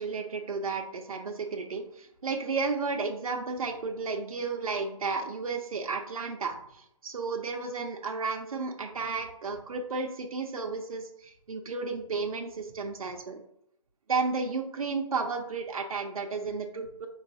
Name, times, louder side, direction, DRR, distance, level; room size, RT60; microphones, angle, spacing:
voice 1, 0.0-13.4 14.1-17.1, right 4 dB, 75° right, 2 dB, 0.7 m, -33 dB
5.2 x 3.1 x 2.7 m, 0.76 s
hypercardioid pair, 155°, 19 cm